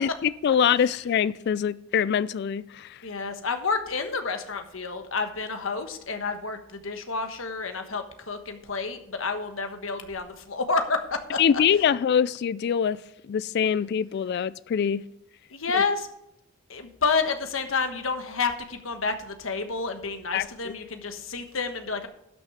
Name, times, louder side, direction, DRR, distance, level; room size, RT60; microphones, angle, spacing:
voice 1, 0.0-3.0 11.4-15.0 15.7-15.8 20.3-20.7, left 8 dB, 55° left, 18 dB, 0.3 m, -24 dB
voice 2, 3.0-11.4 15.5-16.1 16.7-22.1, left 4 dB, 75° left, 7 dB, 1.3 m, -29 dB
12.0 x 6.3 x 4.9 m, 0.83 s
head